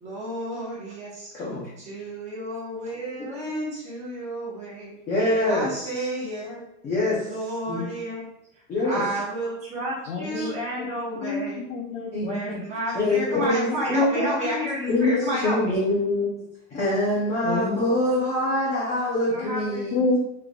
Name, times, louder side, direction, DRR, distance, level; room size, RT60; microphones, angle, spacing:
voice 1, 0.0-1.3 1.9-5.0 5.4-6.6 7.3-8.2 8.8-11.6 12.2-15.7 19.3-19.8, right 1 dB, 15° right, -7 dB, 1.0 m, -31 dB
voice 2, 1.3-1.7 5.1-6.1 6.8-7.9 8.7-9.0 10.3-10.5 12.1-12.6 12.9-14.3 14.9-15.1 15.4-16.3 16.7-20.0, left 1 dB, 15° left, -8 dB, 0.6 m, -25 dB
voice 3, 10.1-10.9 11.2-12.6 13.3-13.8 14.2-14.7 15.0-15.4 17.4-17.8 18.7-18.8 19.4-19.5 19.9-20.2, left 3 dB, 60° left, 3 dB, 0.6 m, -29 dB
3.9 x 3.3 x 2.2 m, 0.82 s
supercardioid pair, 170°, 41 cm